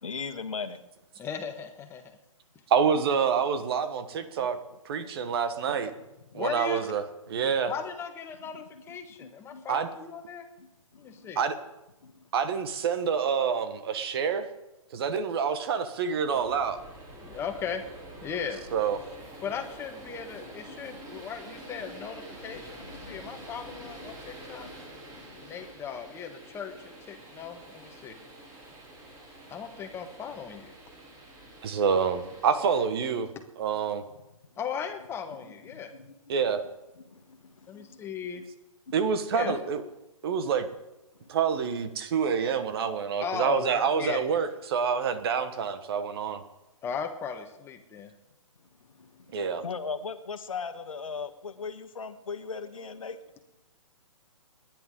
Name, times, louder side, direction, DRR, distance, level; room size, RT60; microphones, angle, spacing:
voice 1, 0.0-0.8 5.7-5.8 6.3-6.4 9.2-9.6 10.6-10.7 10.9-11.3 12.0-12.1 20.7-21.2 22.8-23.4 23.8-23.9 24.6-24.7 25.2-25.5 35.7-36.1 37.1-38.0 38.3-38.4 38.9-39.0 39.4-39.5 41.2-41.3 49.0-49.4 49.6-53.2, left 5 dB, 75° left, 9 dB, 1.5 m, -39 dB
voice 2, 1.2-2.2 6.3-6.9 7.7-10.5 11.0-11.4 17.2-17.9 18.2-18.6 19.4-24.7 25.4-28.2 29.5-30.7 34.6-35.9 37.7-38.4 39.3-39.5 43.2-44.2 46.8-48.1, left 7 dB, 15° left, 5 dB, 1.5 m, -37 dB
voice 3, 2.7-4.6 4.8-5.9 6.3-7.0 7.3-7.7 9.7-9.9 11.4-11.5 12.3-14.5 14.9-16.8 18.7-19.0 31.6-33.3 33.6-34.0 36.3-36.6 38.9-39.8 40.2-40.7 41.3-46.4 49.3-49.6, right 6 dB, 45° right, 10 dB, 1.5 m, -27 dB
sound 1, 16.4-32.9, right 1 dB, 20° right, 3.3 m, -47 dB
29.0 x 10.5 x 3.8 m, 0.98 s
figure-of-eight pair, 135°, 17 cm